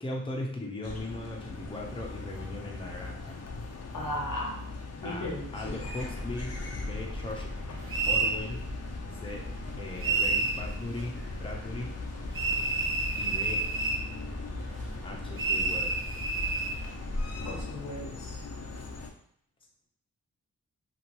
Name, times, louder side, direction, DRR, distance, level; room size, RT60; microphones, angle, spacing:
voice 1, 0.0-3.4 5.0-5.3 5.5-7.5 8.1-8.7 9.1-9.5 9.8-12.0 13.2-13.6 15.0-16.0, left 1 dB, 15° left, -1 dB, 0.8 m, -38 dB
sound 1, 0.8-19.1, left 3 dB, 50° left, 0.6 m, -40 dB
voice 2, 3.9-4.6 5.0-5.8 17.4-18.5, left 1 dB, 75° left, -1 dB, 0.9 m, -36 dB
sound 2, 5.6-17.6, equal, 25° right, 1.0 m, -40 dB
sound 3, 7.9-8.4 10.0-10.6 12.3-14.0 15.4-16.8, right 3 dB, 40° right, 0.6 m, -29 dB
2.8 x 2.5 x 3.0 m, 0.65 s
cardioid pair, 50°, 33 cm